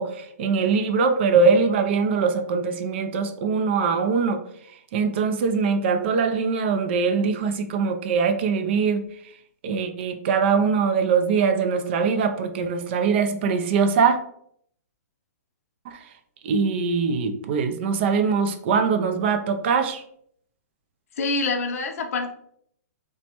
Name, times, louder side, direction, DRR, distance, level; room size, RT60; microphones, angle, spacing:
voice 1, 0.0-4.4 4.9-9.1 9.6-14.2 15.9-16.0 16.4-20.0, right 5 dB, 45° right, 7 dB, 0.3 m, -22 dB
voice 2, 21.2-22.3, left 3 dB, 60° left, 4 dB, 0.6 m, -26 dB
3.1 x 2.1 x 2.9 m, 0.67 s
hypercardioid pair, 145°, 9 cm